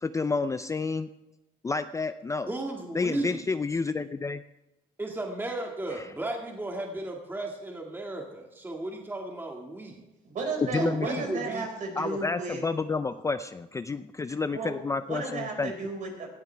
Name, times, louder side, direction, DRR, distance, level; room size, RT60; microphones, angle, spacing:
voice 1, 0.0-1.1 1.6-2.5 2.9-4.4 10.6-11.3 12.0-15.7, left 4 dB, 20° left, 11 dB, 0.5 m, -30 dB
voice 2, 2.5-3.4 5.0-10.0 10.8-11.7, right 2 dB, 10° right, 1 dB, 1.9 m, -34 dB
voice 3, 10.2-12.6 14.5-14.8 15.1-16.3, right 3 dB, 50° right, 1 dB, 5.2 m, -34 dB
18.0 x 13.5 x 3.4 m, 0.97 s
cardioid pair, 110°, 17 cm